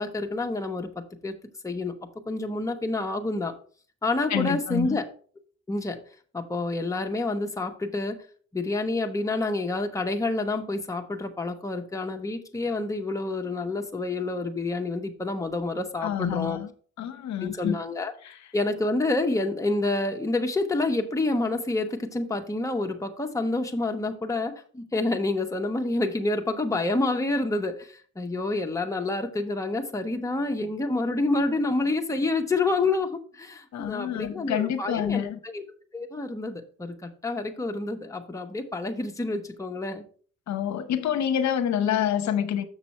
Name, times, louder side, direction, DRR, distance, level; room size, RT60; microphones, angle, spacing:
voice 1, 0.0-1.3 1.6-1.9 2.3-3.5 4.0-5.0 5.7-6.0 6.3-8.2 8.5-16.6 17.4-18.1 18.5-35.6 35.9-40.0, left 2 dB, 10° left, 1.1 m, -28 dB
voice 2, 4.3-5.0 16.0-16.7 17.0-17.8 18.2-18.4 33.7-35.4 40.5-42.6, left 9 dB, 65° left, 0.9 m, -27 dB
6.9 x 6.0 x 4.3 m
cardioid pair, 90°, 30 cm